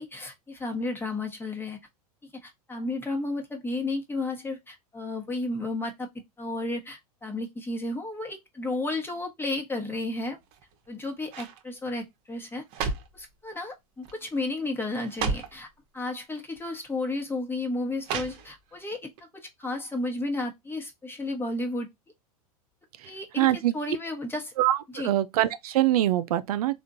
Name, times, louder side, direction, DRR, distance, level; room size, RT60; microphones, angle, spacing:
voice 1, 0.0-1.8 2.3-6.1 6.4-10.4 10.9-15.7 15.9-21.9 23.0-24.5 24.9-25.1, left 2 dB, 10° left, 1.1 m, -33 dB
sound 1, 10.4-10.9 11.3-11.6 12.4-13.2 14.0-14.3 14.6-14.7 15.0-15.6 16.5-16.7 18.0-18.8 19.2-19.3, right 5 dB, 50° right, 0.9 m, -33 dB
voice 2, 23.4-23.7 24.6-26.8, right 14 dB, 70° right, 0.4 m, -24 dB
3.6 x 2.5 x 2.5 m
hypercardioid pair, 100°, 19 cm